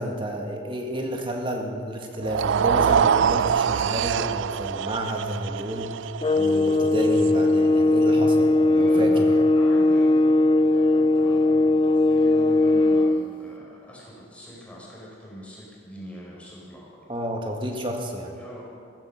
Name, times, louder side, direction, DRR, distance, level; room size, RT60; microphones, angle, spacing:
voice 1, 0.0-6.0 6.4-9.4 17.1-18.3, equal, 25° right, 2 dB, 1.7 m, -30 dB
sound 1, 2.2-8.5, right 7 dB, 75° right, 0.3 m, -25 dB
sound 2, 6.2-13.3, left 2 dB, 25° left, 0.4 m, -19 dB
voice 2, 8.7-9.2 9.5-17.0 18.3-18.6, equal, 5° left, -5 dB, 4.2 m, -41 dB
15.5 x 14.5 x 6.4 m, 2.2 s
head